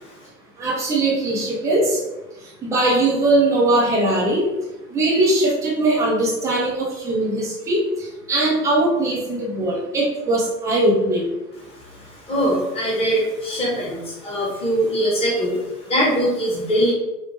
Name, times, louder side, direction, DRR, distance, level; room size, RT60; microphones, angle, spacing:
voice 1, 0.6-2.0 2.6-4.5 4.9-11.3, right 2 dB, 5° right, -5 dB, 0.4 m, -20 dB
voice 2, 12.3-16.9, equal, 10° left, -4 dB, 0.9 m, -22 dB
4.4 x 2.0 x 3.0 m, 1.0 s
hypercardioid pair, 105°, 49 cm